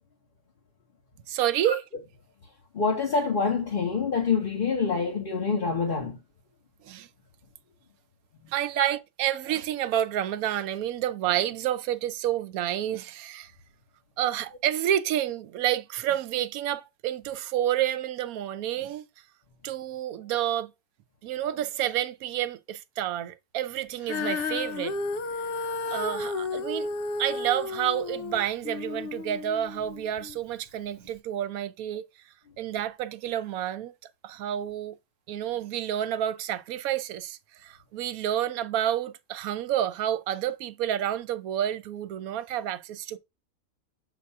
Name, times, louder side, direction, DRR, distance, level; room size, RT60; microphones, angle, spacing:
voice 1, 1.3-1.8 6.8-7.1 8.5-13.5 14.2-19.1 19.6-20.7 21.2-24.9 25.9-26.9 27.2-32.0 32.6-33.9 34.2-35.0 35.3-43.2, right 11 dB, 90° right, 1.1 m, -29 dB
voice 2, 2.7-6.2 8.8-8.9, left 5 dB, 40° left, 1.2 m, -26 dB
Female singing, 24.0-30.4 31.1-31.2, left 4 dB, 60° left, 0.6 m, -33 dB
7.2 x 2.5 x 5.4 m
omnidirectional pair, 1.5 m